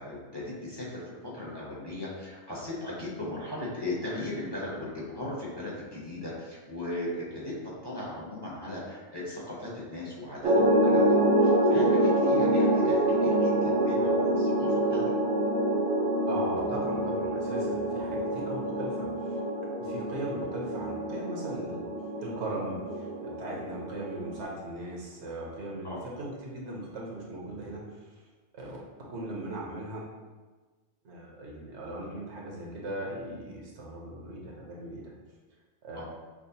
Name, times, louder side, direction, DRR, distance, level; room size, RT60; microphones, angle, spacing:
voice 1, 0.0-15.0 25.8-26.0 35.9-36.1, left 1 dB, 25° left, -7 dB, 0.7 m, -38 dB
sound 1, 10.4-24.4, right 1 dB, 60° right, 0.8 m, -26 dB
voice 2, 16.3-19.4 19.8-21.9 22.2-27.8 28.5-28.8 29.1-30.0 31.0-35.1 35.8-36.1, right 1 dB, 75° right, -3 dB, 1.1 m, -38 dB
5.9 x 2.0 x 2.7 m, 1.3 s
omnidirectional pair, 1.2 m